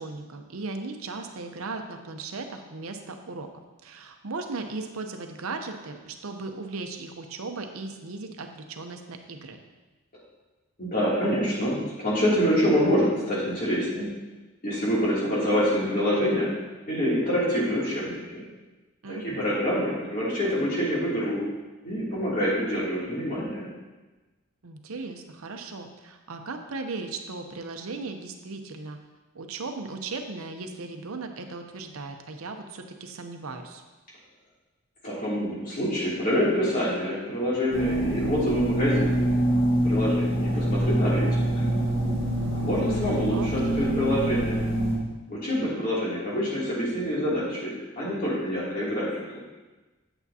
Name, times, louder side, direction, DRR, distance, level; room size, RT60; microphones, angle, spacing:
voice 1, 0.0-3.5 3.8-9.6 19.0-19.5 24.6-29.0 29.3-33.8 43.3-43.9, right 3 dB, 90° right, 5 dB, 0.7 m, -37 dB
voice 2, 10.8-14.1 14.6-16.5 16.9-18.4 19.1-21.4 21.8-23.7 35.0-39.2 39.8-41.6 42.5-44.6 45.3-49.2, equal, 40° left, -8 dB, 2.8 m, -26 dB
sound 1, 37.7-45.0, right 1 dB, 60° left, 1.7 m, -25 dB
8.3 x 7.9 x 2.8 m, 1.2 s
head